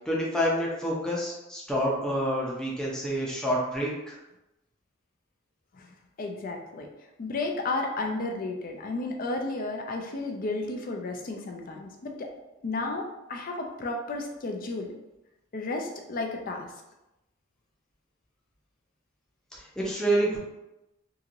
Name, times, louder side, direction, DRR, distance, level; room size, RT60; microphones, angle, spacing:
voice 1, 0.1-4.2 19.5-20.4, equal, 5° left, -5 dB, 0.6 m, -28 dB
voice 2, 5.7-6.9 7.2-12.3 12.6-14.9 15.5-16.7, left 2 dB, 45° left, 2 dB, 0.4 m, -33 dB
2.9 x 2.8 x 2.5 m, 0.95 s
head